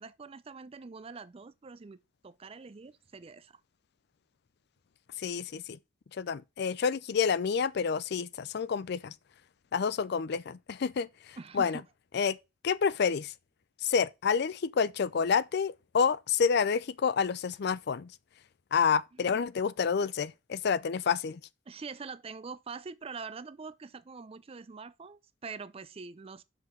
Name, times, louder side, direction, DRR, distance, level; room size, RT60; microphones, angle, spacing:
voice 1, 0.0-3.6 11.4-11.8 19.2-19.4 21.7-26.4, right 4 dB, 30° right, 0.4 m, -44 dB
voice 2, 5.2-5.8 6.2-9.1 9.7-11.8 12.1-12.4 12.6-13.3 13.8-18.1 18.7-21.4, left 6 dB, 60° left, 0.4 m, -29 dB
5.9 x 4.8 x 6.2 m
head